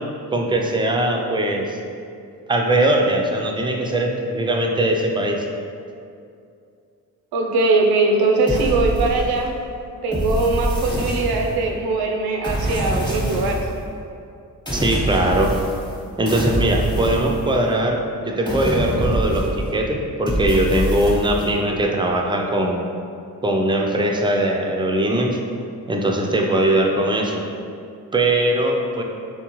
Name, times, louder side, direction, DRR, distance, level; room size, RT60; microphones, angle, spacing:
voice 1, 0.3-1.8 2.5-5.5 14.7-15.5 16.2-22.8 23.4-25.4 25.9-27.4 28.1-29.0, right 1 dB, 15° right, 1 dB, 0.4 m, -20 dB
voice 2, 7.3-9.6 10.0-13.7, right 3 dB, 85° right, 1 dB, 0.5 m, -20 dB
sound 1, 8.5-9.6 10.1-11.7 12.4-13.8 14.7-16.0 16.3-17.9 18.5-19.8 20.3-21.5, equal, 10° left, 1.0 m, -25 dB
3.6 x 3.3 x 3.0 m, 2.4 s
cardioid pair, 75°, 36 cm